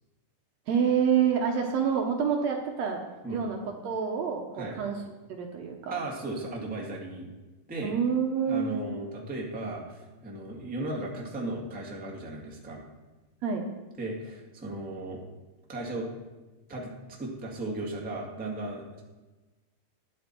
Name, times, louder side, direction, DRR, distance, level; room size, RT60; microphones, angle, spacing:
voice 1, 0.7-3.0 3.3-5.0 5.3-6.0 7.8-8.8 13.4-13.6, right 7 dB, 70° right, 2 dB, 1.9 m, -27 dB
voice 2, 5.9-7.3 7.7-7.9 8.5-12.8 14.0-15.2 15.7-16.1 16.7-16.9 17.2-19.0, right 2 dB, 5° right, -2 dB, 1.1 m, -36 dB
12.0 x 9.7 x 4.5 m, 1.2 s
omnidirectional pair, 3.7 m